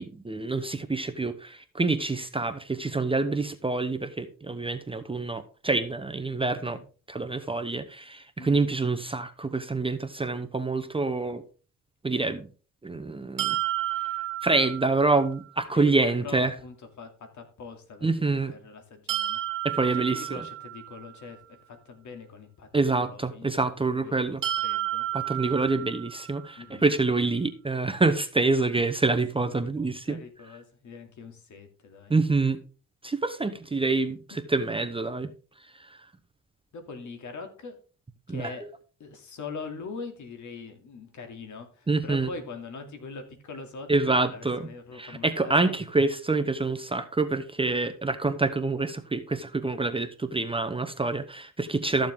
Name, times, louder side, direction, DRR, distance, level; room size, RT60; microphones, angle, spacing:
voice 1, 0.0-6.8 7.1-11.4 12.0-12.5 12.8-13.6 14.0-14.1 14.4-16.5 18.0-18.5 19.6-20.3 22.7-24.4 25.1-30.2 32.1-32.6 33.0-34.2 34.5-35.3 35.9-36.0 38.3-38.5 41.9-42.3 43.9-44.6 45.0-52.1, right 3 dB, 15° right, 8 dB, 0.8 m, -26 dB
voice 2, 8.4-8.7 15.7-19.4 19.8-23.5 24.0-25.1 26.6-26.9 29.4-29.6 30.1-32.2 34.6-34.7 36.7-37.8 38.3-38.6 39.0-45.8, left 4 dB, 60° left, 5 dB, 2.6 m, -42 dB
sound 1, 13.4-15.3 19.1-21.2 24.4-26.5, right 13 dB, 65° right, 2.3 m, -31 dB
13.5 x 7.2 x 3.6 m, 0.38 s
cardioid pair, 100°, 34 cm